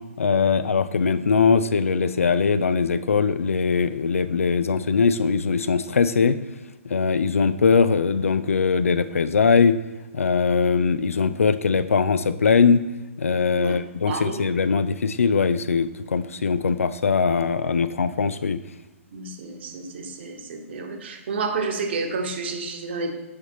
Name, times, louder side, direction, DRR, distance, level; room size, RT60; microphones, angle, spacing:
voice 1, 0.2-6.4 6.8-9.8 10.1-12.8 13.2-18.6, left 5 dB, 70° left, 14 dB, 0.4 m, -21 dB
voice 2, 14.1-14.5 19.1-23.1, right 4 dB, 50° right, 2 dB, 1.1 m, -30 dB
6.9 x 3.4 x 4.1 m, 1.2 s
figure-of-eight pair, 120°, 8 cm